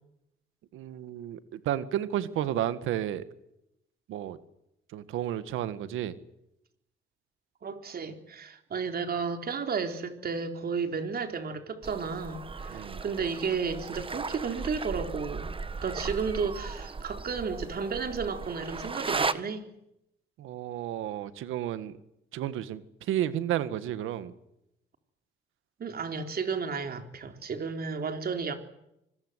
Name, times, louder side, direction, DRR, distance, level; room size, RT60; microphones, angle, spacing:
voice 1, 0.7-3.2 4.1-4.4 4.9-6.1 12.7-13.0 20.4-22.0 22.3-24.3, right 11 dB, 90° right, 1.7 m, -32 dB
voice 2, 7.6-15.6 15.8-19.7 25.8-28.6, right 5 dB, 50° right, 3.9 m, -33 dB
sound 1, 11.8-19.3, right 4 dB, 25° right, 1.4 m, -36 dB
25.5 x 21.5 x 8.2 m
cardioid pair, 90°, 20 cm